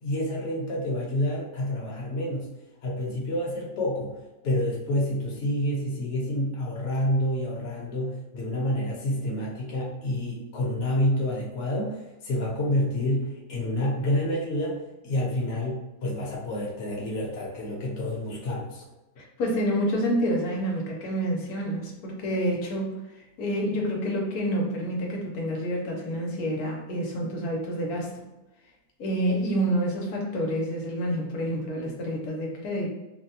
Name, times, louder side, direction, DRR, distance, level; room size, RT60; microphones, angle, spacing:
voice 1, 0.0-2.5 2.8-4.1 4.4-18.8, left 1 dB, 55° left, -3 dB, 1.0 m, -28 dB
voice 2, 19.2-22.9 23.4-28.2 29.0-32.9, equal, 85° left, -1 dB, 1.2 m, -28 dB
3.3 x 2.2 x 2.8 m, 1.0 s
omnidirectional pair, 1.5 m